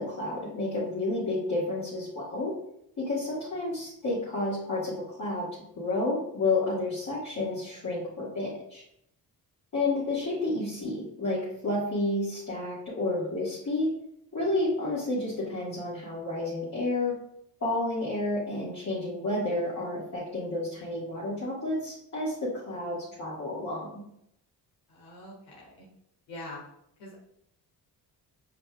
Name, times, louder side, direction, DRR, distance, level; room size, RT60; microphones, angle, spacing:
voice 1, 0.0-2.5 3.0-5.4 5.8-8.8 9.7-13.9 14.3-17.1 17.6-24.0, left 2 dB, 40° left, -7 dB, 1.6 m, -30 dB
voice 2, 24.9-25.8 26.3-26.6 27.0-27.2, left 1 dB, 85° left, -4 dB, 1.5 m, -44 dB
5.1 x 4.1 x 2.3 m, 0.74 s
supercardioid pair, 65°, 43 cm